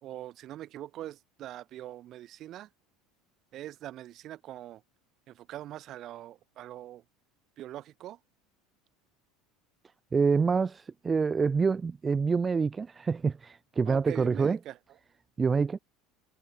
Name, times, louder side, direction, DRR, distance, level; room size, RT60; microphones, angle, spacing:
voice 1, 0.0-2.7 3.5-4.8 5.3-7.0 7.6-8.2 13.9-14.8, right 13 dB, 50° right, 2.3 m, -42 dB
voice 2, 10.1-14.6 15.4-15.8, right 5 dB, 25° right, 0.4 m, -26 dB
hypercardioid pair, 80°, 0 cm